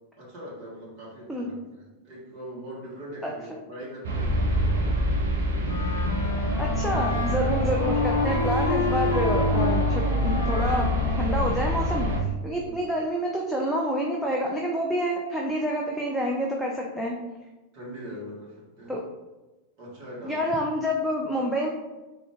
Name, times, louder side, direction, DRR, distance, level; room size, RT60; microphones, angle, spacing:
voice 1, 0.2-5.3 12.6-12.9 17.7-19.0 19.8-20.5, equal, 40° right, -5 dB, 1.2 m, -42 dB
sound 1, 4.0-12.2, right 1 dB, 60° right, 0.6 m, -26 dB
Wind instrument woodwind instrument, 5.6-12.2, left 5 dB, 65° left, 0.4 m, -30 dB
voice 2, 6.6-17.1 18.9-19.0 20.2-21.7, equal, ahead, -2 dB, 0.4 m, -28 dB
3.7 x 2.4 x 3.5 m, 1.1 s
figure-of-eight pair, 90°, 0 cm